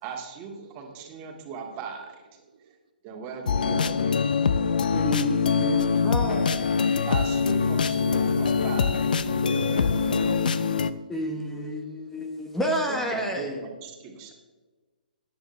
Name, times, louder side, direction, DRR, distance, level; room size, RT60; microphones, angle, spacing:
voice 1, 0.0-2.3 3.0-4.2 7.1-9.1 9.5-10.6 12.9-14.3, right 5 dB, 30° right, 2 dB, 2.1 m, -38 dB
voice 2, 0.6-1.4 2.5-2.7 3.6-4.8 5.4-6.1 10.1-11.1 11.6-12.2, right 5 dB, 55° right, 5 dB, 1.3 m, -55 dB
sound 1, 3.5-10.9, left 5 dB, 65° left, 0.6 m, -24 dB
voice 3, 4.9-6.8 11.1-13.5, equal, 5° left, 2 dB, 1.3 m, -30 dB
14.5 x 10.5 x 3.3 m, 1.3 s
figure-of-eight pair, 130°, 5 cm